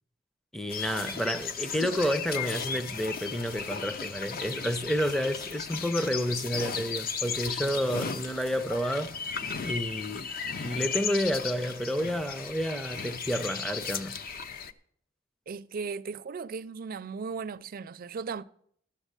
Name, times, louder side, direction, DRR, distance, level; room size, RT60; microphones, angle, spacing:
voice 1, 0.5-9.2 9.6-14.2, equal, ahead, 0.5 m, -30 dB
sound 1, 0.7-14.7, left 6 dB, 50° left, 0.6 m, -35 dB
voice 2, 15.5-18.4, right 5 dB, 50° right, 0.4 m, -36 dB
12.5 x 7.2 x 6.7 m
head